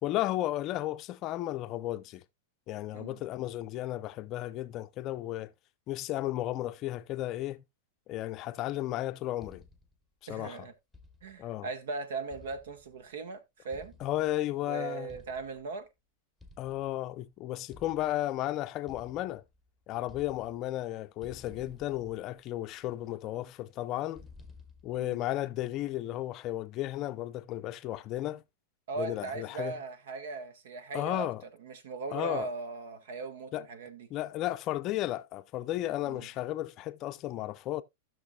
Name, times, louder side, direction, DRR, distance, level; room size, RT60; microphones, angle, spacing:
voice 1, 0.0-2.2 2.7-5.5 5.9-7.6 8.1-9.6 10.3-10.7 11.4-11.7 14.0-15.1 16.6-19.4 19.9-24.3 24.8-28.4 29.0-29.7 30.9-31.4 32.1-32.5 33.5-33.7 34.1-37.8, left 14 dB, 35° left, 0.5 m, -34 dB
sound 1, 9.4-10.0 10.9-11.5 12.3-13.1 13.7-14.5 15.1-15.7 16.4-17.2 17.7-18.4 18.9-19.7 20.0-20.9 21.2-22.7 24.1-25.1, left 3 dB, ahead, 1.0 m, -54 dB
voice 2, 10.3-10.7 11.2-14.0 14.6-15.9 25.0-25.2 28.9-31.3 31.6-34.1 36.0-36.3, right 4 dB, 75° right, 1.5 m, -38 dB
16.0 x 6.1 x 2.3 m
supercardioid pair, 150°, 0 cm